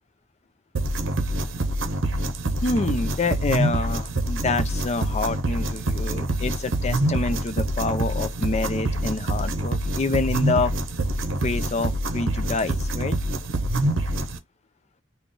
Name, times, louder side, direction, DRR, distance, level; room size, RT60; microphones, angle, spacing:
sound 1, 0.7-14.4, right 1 dB, 70° right, 0.7 m, -26 dB
voice 1, 2.6-10.7 11.4-13.2, left 3 dB, 35° left, 0.5 m, -27 dB
3.8 x 2.3 x 3.7 m
head